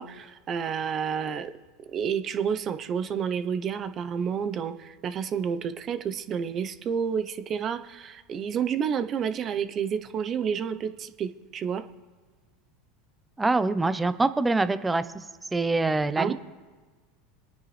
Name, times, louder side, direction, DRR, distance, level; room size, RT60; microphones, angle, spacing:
voice 1, 0.0-1.5 1.9-11.8 16.2-16.3, right 7 dB, 40° right, 10 dB, 0.9 m, -30 dB
voice 2, 13.4-15.0 15.5-16.3, right 3 dB, 15° right, 12 dB, 0.8 m, -24 dB
26.0 x 9.5 x 3.4 m, 1.4 s
hypercardioid pair, 90°, 0 cm